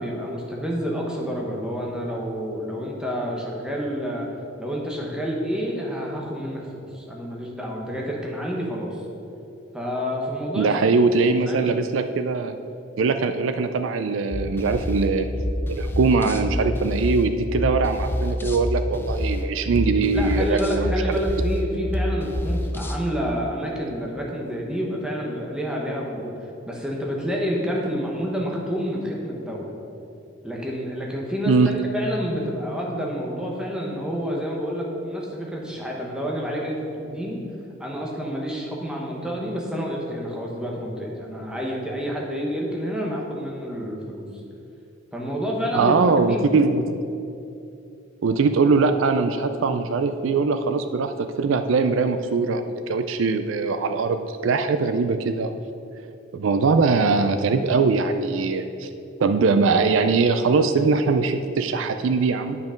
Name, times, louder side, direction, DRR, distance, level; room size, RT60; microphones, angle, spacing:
voice 1, 0.0-4.3 4.6-6.6 6.9-9.0 9.7-11.0 11.3-11.7 20.1-29.7 30.4-37.4 37.8-44.2 45.1-45.9 46.3-46.5, equal, 5° right, -2 dB, 1.1 m, -29 dB
voice 2, 10.6-12.5 13.0-15.3 15.7-21.2 31.5-31.7 45.7-47.0 48.2-55.5 56.3-58.9 59.2-62.6, right 4 dB, 80° right, 8 dB, 0.4 m, -21 dB
sound 1, 14.3-23.0, equal, 10° left, 0.4 m, -27 dB
9.3 x 5.9 x 5.1 m, 2.8 s
head